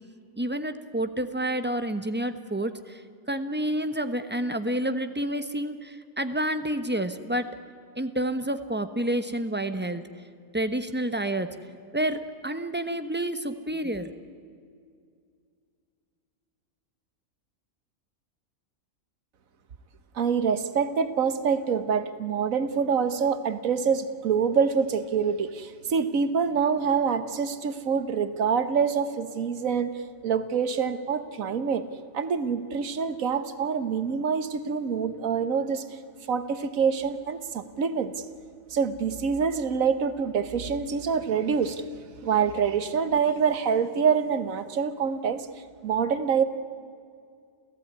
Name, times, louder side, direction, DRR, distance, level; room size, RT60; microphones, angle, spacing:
voice 1, 0.4-3.0 3.3-7.5 7.9-10.0 10.5-11.6 11.9-14.1, right 1 dB, 10° right, 9 dB, 1.0 m, -29 dB
voice 2, 20.1-29.9 30.2-31.9 32.1-35.8 36.3-38.1 38.7-45.5 45.8-46.4, right 6 dB, 85° right, 12 dB, 1.5 m, -26 dB
29.5 x 15.5 x 9.6 m, 2.3 s
omnidirectional pair, 1.4 m